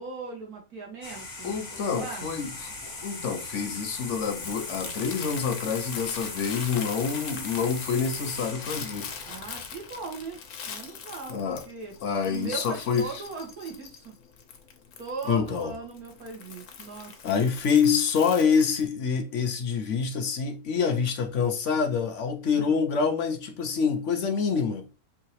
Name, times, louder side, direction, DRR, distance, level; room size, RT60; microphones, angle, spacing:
voice 1, 0.0-2.3 9.3-10.4 10.7-11.9 12.2-14.1 15.0-17.5 22.5-22.8, right 4 dB, 90° right, 2.0 m, -39 dB
sound 1, 1.0-10.2, left 3 dB, 45° left, 1.5 m, -39 dB
voice 2, 1.4-9.1 11.3-11.6 12.0-13.1 15.3-15.7 17.2-24.8, left 6 dB, 60° left, 1.0 m, -26 dB
Crumpling crinkling, 2.4-18.9, left 6 dB, 80° left, 1.3 m, -43 dB
4.5 x 2.8 x 3.1 m
omnidirectional pair, 1.5 m